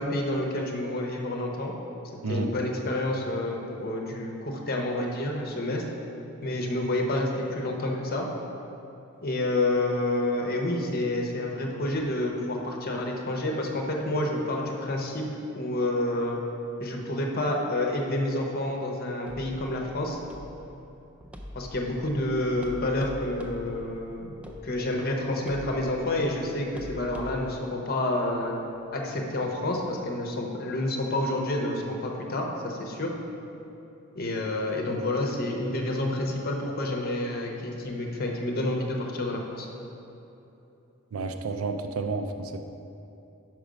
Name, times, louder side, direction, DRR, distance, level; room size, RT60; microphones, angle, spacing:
voice 1, 0.0-1.7 2.3-5.8 6.4-8.3 9.2-15.3 15.5-16.4 16.8-20.2 21.5-24.3 24.6-28.6 28.9-33.1 34.1-39.7, left 1 dB, 45° left, 0 dB, 0.8 m, -29 dB
sound 1, 19.3-27.5, equal, 5° right, 0.4 m, -44 dB
voice 2, 41.1-42.6, right 3 dB, 85° right, 6 dB, 0.5 m, -30 dB
6.0 x 5.1 x 5.0 m, 2.9 s
head